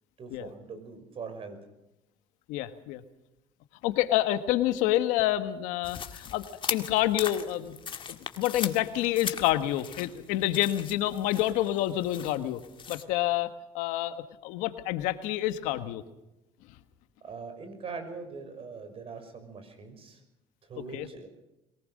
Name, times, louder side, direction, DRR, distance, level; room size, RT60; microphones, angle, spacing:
voice 1, 0.2-1.6 17.2-20.2 20.7-21.3, right 4 dB, 50° right, 8 dB, 5.7 m, -42 dB
voice 2, 2.5-3.0 3.8-7.7 8.1-12.6 12.9-16.0 20.9-21.1, left 14 dB, 85° left, 10 dB, 1.4 m, -28 dB
sound 1, 5.8-13.0, left 7 dB, 40° left, 1.9 m, -39 dB
22.5 x 19.0 x 6.5 m, 0.92 s
supercardioid pair, 85°, 13 cm